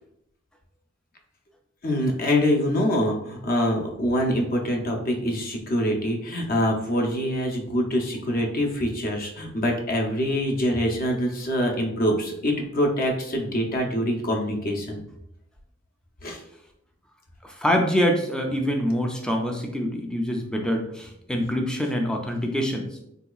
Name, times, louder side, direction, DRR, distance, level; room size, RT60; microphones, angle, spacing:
voice 1, 1.8-15.0 16.2-16.4, equal, 45° left, 2 dB, 0.6 m, -25 dB
voice 2, 17.4-22.9, equal, 5° left, 2 dB, 0.4 m, -25 dB
3.8 x 2.8 x 2.3 m, 0.78 s
head